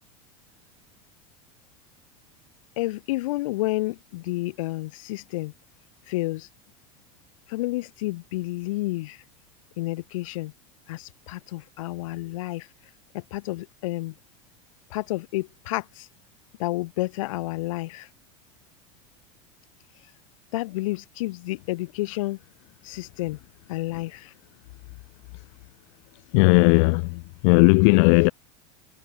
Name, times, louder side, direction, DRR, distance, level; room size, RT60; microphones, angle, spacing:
voice 1, 2.8-5.5 6.1-6.5 7.5-9.2 9.8-10.5 10.9-12.7 13.1-14.1 14.9-16.1 16.6-18.1 20.5-22.4 22.8-23.4 23.7-24.3, left 19 dB, 75° left, 6.6 m, -30 dB
voice 2, 26.3-28.3, left 36 dB, 60° left, 0.8 m, -17 dB
supercardioid pair, 140°, 17 cm